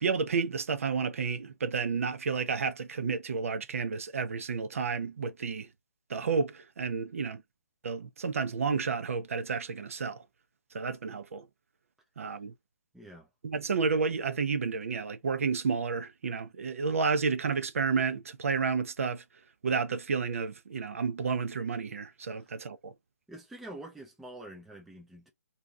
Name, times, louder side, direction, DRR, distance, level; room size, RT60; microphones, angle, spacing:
voice 1, 0.0-5.7 6.1-7.4 7.8-10.2 10.7-11.5 12.2-12.5 13.4-19.2 19.6-22.9, right 5 dB, 55° right, 0.5 m, -31 dB
voice 2, 12.9-13.3 22.4-22.5 23.3-25.3, right 1 dB, ahead, 0.4 m, -46 dB
2.7 x 2.3 x 3.3 m
figure-of-eight pair, 145°, 9 cm